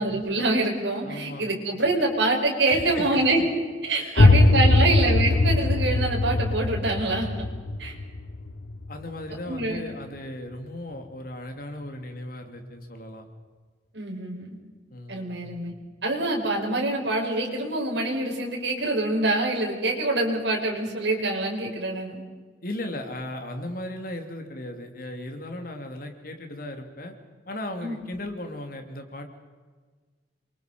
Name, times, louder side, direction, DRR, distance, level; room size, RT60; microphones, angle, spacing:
voice 1, 0.0-3.4 3.8-7.5 7.8-7.9 9.5-9.8 13.9-14.6 15.1-15.7 16.0-22.2 27.8-28.0, right 2 dB, 80° right, -2 dB, 4.8 m, -25 dB
voice 2, 1.0-1.5 2.7-3.2 4.0-4.9 8.9-13.2 14.9-15.3 22.6-27.1 27.5-29.3, left 1 dB, 50° left, 4 dB, 3.2 m, -37 dB
sound 1, 4.2-9.8, left 2 dB, 75° left, 1.0 m, -21 dB
28.5 x 23.0 x 5.4 m, 1.5 s
head